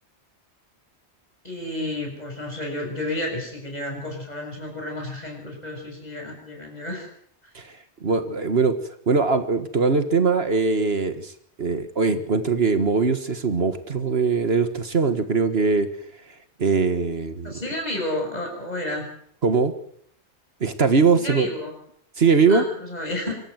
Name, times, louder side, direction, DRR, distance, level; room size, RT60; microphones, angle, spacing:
voice 1, 1.4-7.1 17.4-19.0 21.1-21.7 22.5-23.3, left 1 dB, 35° left, 1 dB, 7.0 m, -31 dB
voice 2, 8.0-8.8 9.1-11.3 11.6-15.9 16.6-17.5 19.4-19.7 20.6-21.5 22.2-22.6, right 4 dB, 65° right, 10 dB, 1.8 m, -21 dB
25.5 x 14.0 x 8.0 m, 0.66 s
omnidirectional pair, 1.1 m